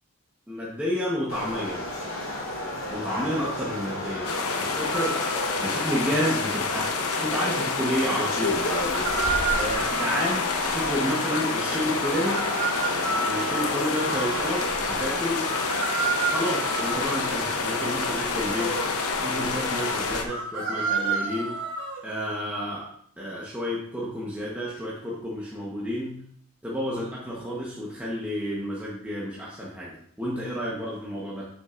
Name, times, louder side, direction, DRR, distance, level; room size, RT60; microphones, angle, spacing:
voice 1, 0.5-1.9 2.9-6.9 7.2-9.1 9.5-12.4 13.2-15.4 16.2-18.8 19.2-21.6 22.0-22.9 23.2-26.2 26.6-31.5, equal, 5° right, -7 dB, 1.1 m, -30 dB
sound 1, 1.3-20.2, left 1 dB, 60° left, 2.3 m, -32 dB
sound 2, 4.2-20.2, left 4 dB, 80° left, 0.8 m, -29 dB
sound 3, 4.9-5.5 8.7-10.4 12.0-13.8 15.4-17.2 20.3-22.0, right 4 dB, 55° right, 1.3 m, -30 dB
8.6 x 6.6 x 2.6 m, 0.65 s
head